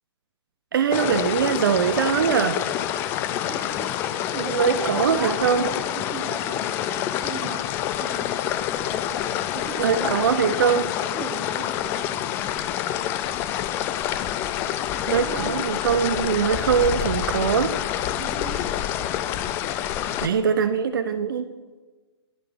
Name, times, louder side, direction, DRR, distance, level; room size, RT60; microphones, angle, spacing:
voice 1, 0.7-2.6 4.4-5.7 9.8-10.8 15.1-17.7 20.2-21.5, right 7 dB, 50° right, 10 dB, 0.6 m, -22 dB
sound 1, 0.9-20.3, left 11 dB, 15° left, 0.3 m, -27 dB
voice 2, 3.5-8.4 8.7-12.6 14.9-15.7 18.1-18.7, right 3 dB, 5° right, 3 dB, 1.2 m, -37 dB
11.0 x 10.5 x 4.7 m, 1.3 s
figure-of-eight pair, 120°, 15 cm